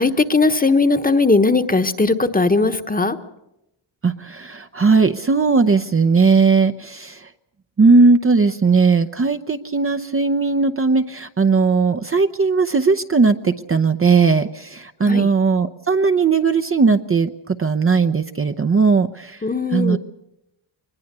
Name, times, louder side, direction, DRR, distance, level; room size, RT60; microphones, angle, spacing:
voice 1, 0.0-3.2 15.1-15.3 19.4-20.0, left 3 dB, 20° left, 9 dB, 1.2 m, -18 dB
voice 2, 4.0-7.3 7.8-19.4 19.7-20.0, right 4 dB, 30° right, 8 dB, 0.8 m, -17 dB
22.5 x 20.5 x 6.8 m, 0.89 s
cardioid pair, 80°, 47 cm